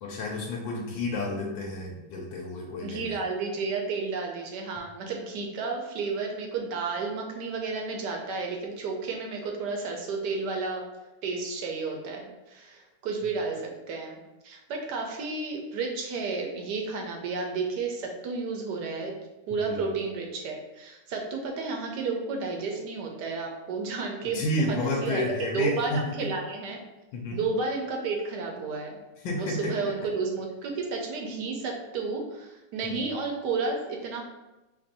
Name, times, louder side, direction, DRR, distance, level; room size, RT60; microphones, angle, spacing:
voice 1, 0.0-3.2 19.5-19.8 24.2-26.3 27.1-27.4 29.2-29.7 32.8-33.0, left 2 dB, 90° left, -2 dB, 1.4 m, -31 dB
voice 2, 2.8-10.9 11.2-19.1 19.5-26.8 27.3-29.0 29.4-34.2, right 4 dB, 70° right, 1 dB, 1.2 m, -32 dB
3.4 x 2.6 x 4.0 m, 1.0 s
omnidirectional pair, 2.0 m